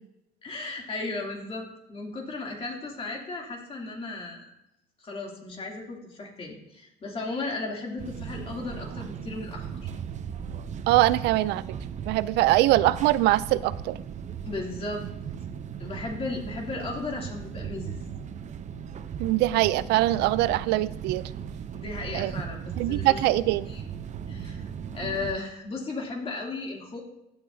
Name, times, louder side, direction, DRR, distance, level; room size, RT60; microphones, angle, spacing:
voice 1, 0.4-4.5 5.0-9.9 14.4-15.1 15.8-18.0 21.7-23.3 23.7-23.8 24.3-27.0, left 3 dB, 35° left, 0 dB, 2.7 m, -35 dB
sound 1, 8.0-25.3, right 7 dB, 45° right, 0.6 m, -37 dB
voice 2, 10.9-11.6 12.1-14.0 19.2-21.3 22.1-22.3 22.8-23.7, right 16 dB, 85° right, 17 dB, 0.4 m, -23 dB
15.0 x 8.6 x 2.7 m, 0.86 s
cardioid pair, 110°, 17 cm